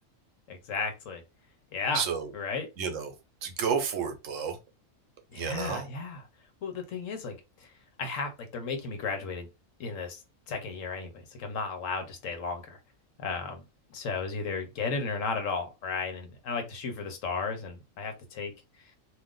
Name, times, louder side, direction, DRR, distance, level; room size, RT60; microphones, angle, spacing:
voice 1, 0.5-1.2 1.7-2.0 2.3-2.7 5.3-6.2 6.6-7.4 7.6-7.7 8.0-9.5 9.8-10.2 10.5-12.8 13.2-13.6 13.9-18.5, left 4 dB, 75° left, 1.1 m, -34 dB
voice 2, 1.9-2.3 2.8-3.1 3.4-4.6 5.3-5.9, right 6 dB, 75° right, 1.1 m, -31 dB
2.5 x 2.4 x 3.6 m
omnidirectional pair, 1.4 m